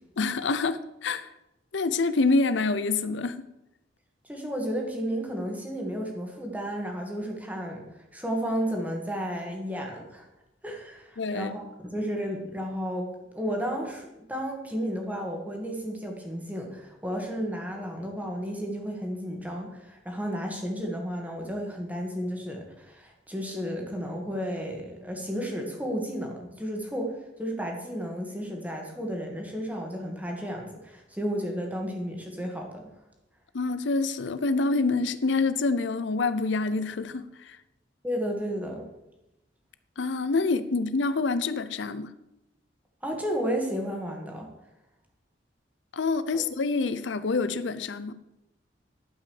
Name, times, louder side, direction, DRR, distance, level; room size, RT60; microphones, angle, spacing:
voice 1, 0.2-1.3 1.7-3.5 11.2-11.5 33.5-37.6 40.0-42.1 45.9-48.1, left 3 dB, 80° left, 0.6 m, -26 dB
voice 2, 4.3-7.8 8.1-10.3 10.6-13.1 13.3-27.1 27.4-32.9 38.0-38.8 43.0-44.5 46.3-46.4, equal, 10° right, 1.9 m, -32 dB
11.5 x 5.7 x 7.1 m
head